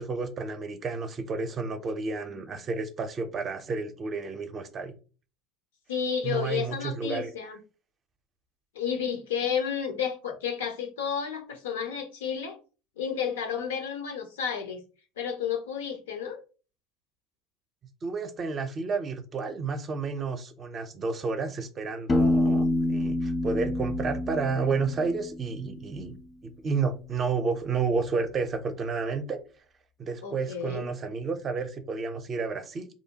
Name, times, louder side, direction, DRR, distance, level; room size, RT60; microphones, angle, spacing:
voice 1, 0.0-4.9 6.2-7.3 18.0-26.2 26.4-29.4 30.0-32.9, right 4 dB, 35° right, 0.5 m, -31 dB
voice 2, 5.9-7.6 8.7-12.6 13.0-14.8 15.2-16.4 30.2-30.9, left 7 dB, 90° left, 0.5 m, -31 dB
Piano, 22.1-25.8, left 1 dB, 30° left, 0.3 m, -27 dB
2.6 x 2.1 x 2.7 m
hypercardioid pair, 85°, 0 cm